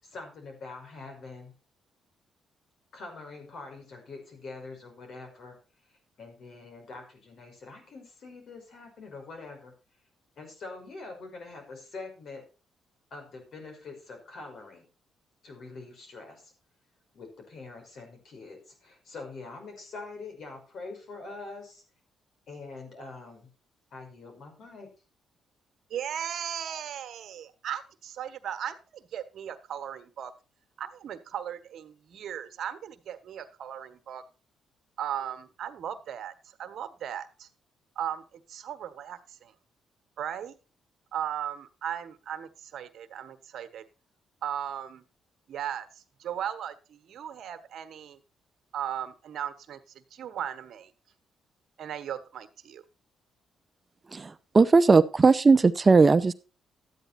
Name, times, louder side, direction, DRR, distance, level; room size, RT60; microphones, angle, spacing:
voice 1, 0.0-1.5 2.9-5.6 5.9-9.7 10.4-12.4 13.1-14.9 15.4-16.5 17.1-21.8 22.5-23.5 23.9-24.9, left 3 dB, 60° left, 3 dB, 5.6 m, -44 dB
voice 2, 25.9-30.3 30.8-34.2 35.0-36.3 36.6-37.5 37.9-39.5 40.2-40.5 41.1-43.8 44.4-45.0 45.5-48.2 48.7-50.9 51.8-52.8, right 9 dB, 70° right, 10 dB, 1.3 m, -37 dB
voice 3, 54.1-56.3, right 4 dB, 30° right, 14 dB, 0.7 m, -19 dB
12.5 x 9.3 x 4.3 m, 0.32 s
cardioid pair, 80°, 0 cm